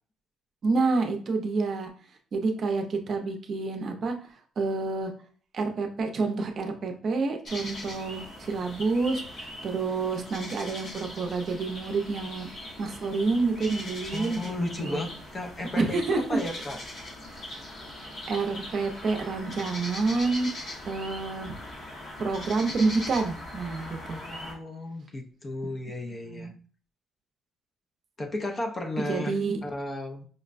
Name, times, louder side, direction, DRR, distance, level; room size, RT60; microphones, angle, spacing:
voice 1, 0.6-1.9 2.3-4.2 4.6-5.1 5.5-12.5 12.8-15.0 15.8-16.4 17.3-17.6 18.3-21.6 22.2-24.3 26.3-26.5 29.0-29.6, right 3 dB, 45° right, 3 dB, 0.5 m, -28 dB
sound 1, 7.5-24.5, left 1 dB, 50° left, 1.1 m, -40 dB
voice 2, 14.1-16.8 24.1-26.5 28.2-29.3 29.6-30.3, left 2 dB, 30° left, 3 dB, 0.5 m, -34 dB
5.1 x 2.1 x 2.4 m, 0.43 s
cardioid pair, 135°, 0 cm